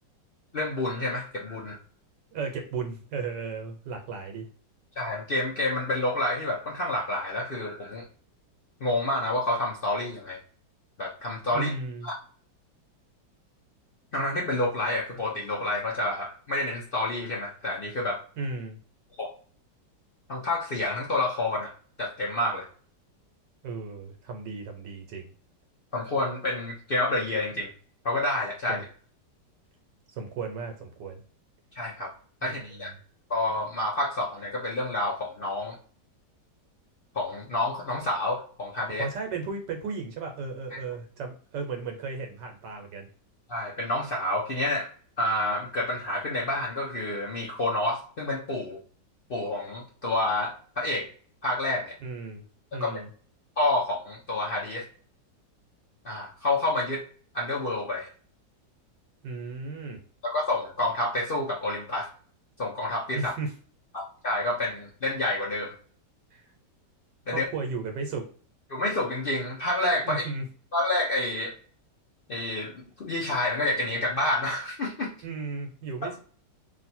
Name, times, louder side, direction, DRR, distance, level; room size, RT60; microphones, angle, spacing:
voice 1, 0.5-1.8 5.0-8.0 8.8-10.4 11.0-11.7 12.0-12.1 14.1-18.2 19.2-19.3 20.3-21.7 22.0-22.7 25.9-27.7 28.0-28.8 31.8-32.1 32.4-32.9 33.3-35.8 37.1-39.1 40.7-40.8 43.5-44.9 45.2-48.8 49.3-51.1 51.4-51.9 52.7-53.0 53.6-54.8 56.0-57.0 57.3-58.1 60.2-62.1 62.6-63.3 63.9-65.8 67.3-67.4 68.7-70.3 70.7-71.5 72.3-75.1 76.0-76.2, left 1 dB, 55° left, -2 dB, 0.6 m, -29 dB
voice 2, 2.3-4.5 11.5-12.1 18.4-18.8 23.6-25.3 28.7-28.8 30.1-31.2 32.4-32.9 39.0-43.1 52.0-52.4 52.7-53.1 59.2-60.0 63.1-63.5 66.3-66.4 67.3-68.3 70.0-70.4 75.2-76.2, right 4 dB, 80° right, 4 dB, 1.4 m, -35 dB
3.3 x 2.5 x 4.3 m, 0.43 s
omnidirectional pair, 1.9 m